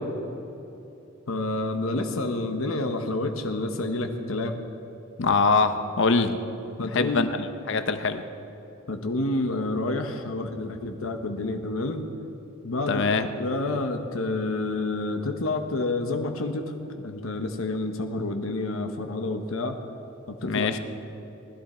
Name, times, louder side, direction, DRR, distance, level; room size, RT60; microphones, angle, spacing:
voice 1, 1.3-4.6 6.8-7.3 8.9-12.0 12.6-13.0 13.3-19.8 20.3-20.7, left 2 dB, 85° left, 5 dB, 1.0 m, -29 dB
voice 2, 5.2-6.4 6.9-8.2 12.9-13.3 20.4-20.8, left 4 dB, 60° left, 9 dB, 0.8 m, -23 dB
20.0 x 12.0 x 4.4 m, 2.9 s
head